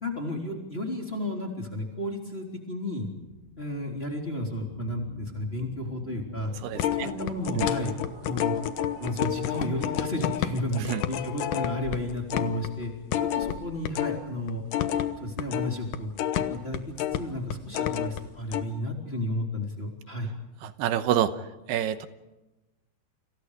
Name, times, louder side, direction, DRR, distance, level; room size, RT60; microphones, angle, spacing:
voice 1, 0.0-3.1 3.6-6.5 6.9-7.9 8.2-8.6 9.0-14.6 15.2-16.8 17.1-20.3, left 1 dB, 15° left, 1 dB, 3.2 m, -32 dB
sound 1, 3.2-10.1, right 4 dB, 90° right, 4.8 m, -48 dB
voice 2, 6.6-7.1 7.6-7.7 10.8-11.0 20.6-21.3 21.7-22.1, right 10 dB, 75° right, 11 dB, 2.8 m, -27 dB
sound 2, 6.8-14.2 14.5-18.2 18.5-18.6, left 11 dB, 75° left, 2.0 m, -29 dB
30.0 x 26.5 x 5.0 m, 1.0 s
omnidirectional pair, 5.1 m